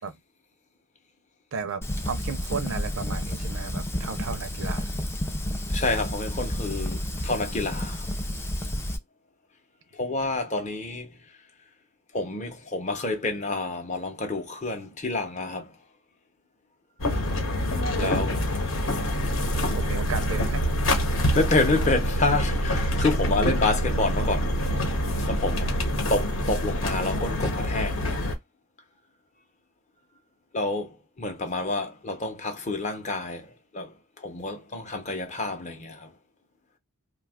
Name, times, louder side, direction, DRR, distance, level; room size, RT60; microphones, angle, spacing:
voice 1, 1.5-4.9 17.1-17.2 18.0-18.2 19.6-21.1, right 5 dB, 65° right, 0.5 m, -34 dB
Fire, 1.8-9.0, left 1 dB, 10° left, 0.3 m, -31 dB
voice 2, 5.7-8.1 9.9-11.1 12.1-15.7 18.0-18.3 21.3-24.6 25.3-25.7 26.1-28.2 30.5-36.1, left 2 dB, 35° left, 0.7 m, -28 dB
sound 1, 17.0-28.3, equal, 65° left, 0.9 m, -26 dB
2.7 x 2.3 x 3.5 m
head